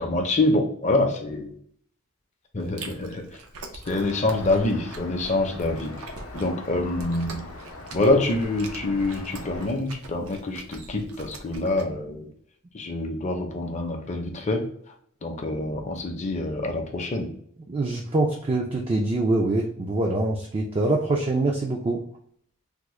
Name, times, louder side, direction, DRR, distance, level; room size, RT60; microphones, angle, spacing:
voice 1, 0.0-1.5 2.5-3.2 3.9-5.9 6.3-7.4 7.9-12.3 12.7-14.7 15.2-17.3, left 2 dB, 35° left, 3 dB, 0.5 m, -26 dB
Chewing mastication, 2.6-11.8, right 2 dB, 90° right, 0.6 m, -43 dB
Traffic noise roadway noise, 3.8-9.7, left 2 dB, 75° left, 0.6 m, -42 dB
voice 2, 17.7-22.0, right 2 dB, 25° right, 0 dB, 0.3 m, -24 dB
3.5 x 2.1 x 3.0 m, 0.64 s
head